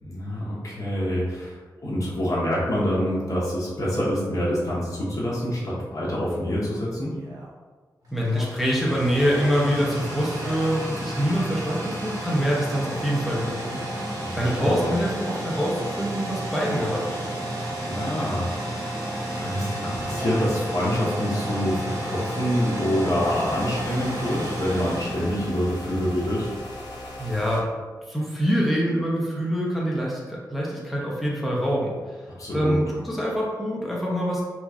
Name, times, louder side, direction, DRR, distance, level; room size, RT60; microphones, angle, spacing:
voice 1, 0.0-7.1 14.2-15.0 17.8-18.8 19.3-26.5 32.4-32.8, equal, 50° left, -7 dB, 0.8 m, -26 dB
Male speech man speaking, 7.1-7.5 8.2-8.5 9.0-9.5 10.3-10.8 11.5-11.8 12.3-12.7 13.1-13.7 14.2-14.8 16.2-17.1 17.8-18.2 18.9-19.3 20.0-20.5 20.9-21.6 22.3-22.8, right 2 dB, 70° right, 0.6 m, -42 dB
sound 1, 8.0-26.2, right 1 dB, 55° right, 1.1 m, -32 dB
voice 2, 8.1-13.8 14.3-17.1 27.2-27.7 28.1-32.0 32.5-34.4, equal, ahead, -5 dB, 0.6 m, -25 dB
sound 2, 23.2-27.6, left 1 dB, 75° left, 0.9 m, -38 dB
3.0 x 2.4 x 3.6 m, 1.4 s
wide cardioid pair, 155°, 7 cm